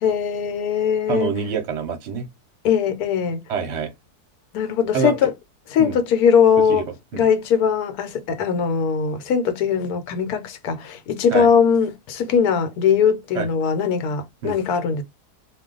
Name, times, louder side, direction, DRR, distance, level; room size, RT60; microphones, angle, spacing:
voice 1, 0.0-1.3 2.6-3.4 4.5-5.3 5.7-6.9 7.1-15.0, left 7 dB, 75° left, 1.1 m, -20 dB
voice 2, 1.1-2.3 3.5-3.9 4.9-5.1 5.8-6.0 6.7-6.8 7.1-7.3 11.3-11.5 13.3-13.5 14.4-14.5, right 6 dB, 55° right, 0.9 m, -25 dB
2.4 x 2.2 x 3.7 m
omnidirectional pair, 1.7 m